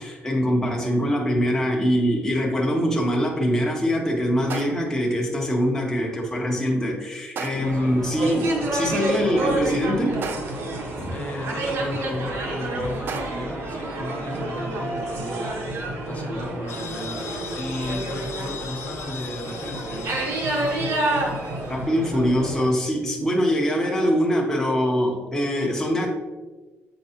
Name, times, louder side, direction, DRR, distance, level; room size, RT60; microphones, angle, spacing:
voice 1, 0.0-10.3 11.0-11.1 21.7-26.1, equal, 10° left, -2 dB, 1.1 m, -23 dB
sound 1, 2.2-2.3 4.5-5.1 7.4-7.9 10.2-10.8 13.1-13.6, right 5 dB, 50° right, 0.5 m, -34 dB
voice 2, 7.5-8.0 11.1-15.6 16.1-20.3, left 1 dB, 35° left, 0 dB, 1.3 m, -35 dB
sound 2, 7.6-22.7, right 1 dB, 70° right, 1.3 m, -29 dB
sound 3, 16.7-21.9, left 7 dB, 70° left, 0.3 m, -40 dB
7.6 x 4.6 x 2.9 m, 1.3 s
cardioid pair, 135°, 5 cm